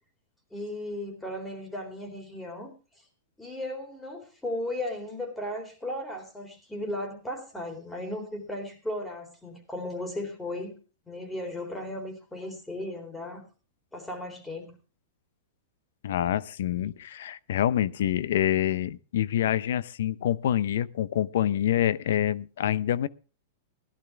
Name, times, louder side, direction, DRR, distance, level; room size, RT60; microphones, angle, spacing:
voice 1, 0.5-2.7 3.4-10.8 11.1-13.4 13.9-14.7, left 1 dB, 5° left, 3.8 m, -36 dB
voice 2, 16.0-23.1, left 11 dB, 75° left, 0.7 m, -26 dB
17.0 x 12.0 x 3.4 m
hypercardioid pair, 130°, 0 cm